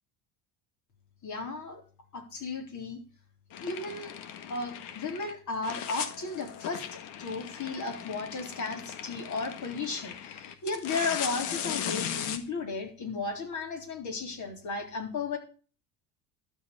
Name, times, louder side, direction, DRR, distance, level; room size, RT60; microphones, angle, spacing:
voice 1, 1.2-1.8 2.1-3.0 3.6-4.2 4.5-15.4, left 3 dB, 40° left, 3 dB, 3.9 m, -35 dB
sound 1, 3.5-5.3 5.6-12.4, left 9 dB, 70° left, 1.6 m, -38 dB
12.5 x 5.0 x 8.3 m, 0.39 s
supercardioid pair, 90°, 44 cm